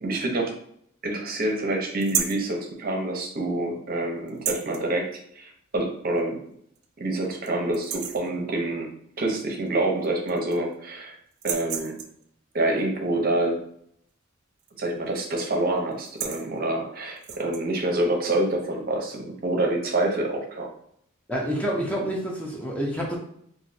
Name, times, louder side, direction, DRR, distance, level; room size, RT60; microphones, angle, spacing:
voice 1, 0.0-0.6 1.0-6.4 7.0-8.9 9.2-11.2 11.4-12.0 12.5-13.6 14.8-20.7, right 2 dB, 45° right, 1 dB, 0.6 m, -27 dB
sound 1, 2.0-2.5 4.3-4.8 6.2-6.3 6.8-6.9 7.2-7.5 7.7-8.3 9.7-9.8 10.0-10.7 11.3-12.2 14.6-14.9 15.2-15.5 15.9-16.5 17.2-17.6, right 8 dB, 90° right, 0.4 m, -32 dB
voice 2, 21.3-23.2, equal, 5° left, -2 dB, 0.4 m, -28 dB
3.0 x 2.5 x 2.6 m, 0.68 s
head